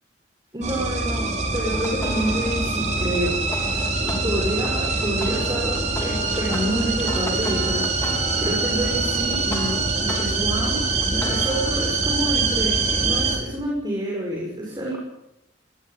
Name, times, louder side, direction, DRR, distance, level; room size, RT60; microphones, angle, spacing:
voice 1, 0.5-3.4 4.0-8.1 8.4-15.0, right 1 dB, 25° right, -2 dB, 6.7 m, -28 dB
sound 1, 0.6-13.4, right 3 dB, 40° right, 5.7 m, -24 dB
sound 2, 1.7-4.2 4.6-10.2 10.6-11.7, left 1 dB, 15° left, 3.2 m, -35 dB
23.5 x 20.0 x 8.1 m, 0.87 s
head